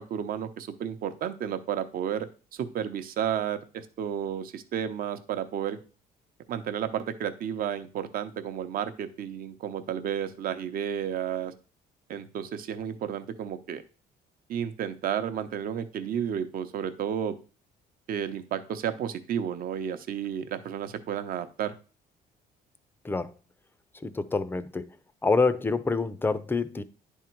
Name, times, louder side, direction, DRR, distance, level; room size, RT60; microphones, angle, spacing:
voice 1, 0.0-5.8 6.5-11.5 12.1-13.8 14.5-17.4 18.1-21.8, right 9 dB, 60° right, 0.8 m, -32 dB
voice 2, 24.0-24.9 25.2-26.8, left 3 dB, 10° left, 0.5 m, -26 dB
10.0 x 3.7 x 4.5 m
cardioid pair, 110°, 17 cm